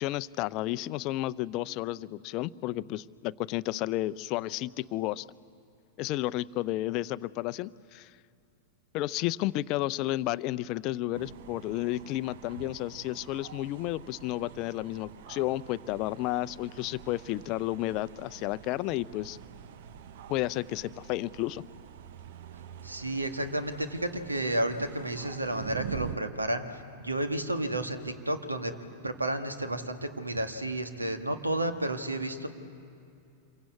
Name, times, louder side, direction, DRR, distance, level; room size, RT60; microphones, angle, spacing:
voice 1, 0.0-5.3 6.0-8.1 8.9-19.4 20.3-21.6, left 16 dB, 40° left, 15 dB, 0.5 m, -32 dB
sound 1, 11.1-26.2, right 9 dB, 55° right, 0.8 m, -46 dB
voice 2, 22.8-28.7 29.0-32.5, right 1 dB, 80° right, 7 dB, 1.7 m, -31 dB
27.5 x 23.0 x 8.5 m, 2.6 s
figure-of-eight pair, 90°, 0 cm